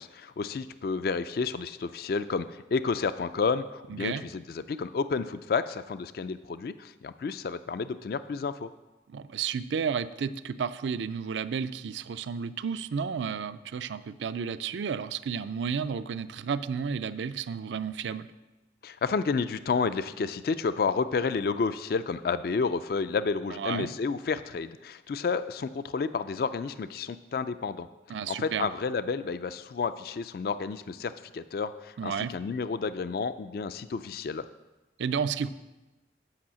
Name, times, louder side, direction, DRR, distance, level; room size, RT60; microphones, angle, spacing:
voice 1, 0.0-8.7 18.8-27.9 28.3-34.4, left 5 dB, 55° left, 13 dB, 0.3 m, -30 dB
voice 2, 3.9-4.2 9.1-18.3 23.5-23.9 28.1-28.7 32.0-32.3 35.0-35.5, right 6 dB, 80° right, 14 dB, 0.4 m, -32 dB
8.6 x 5.5 x 7.4 m, 1.1 s
head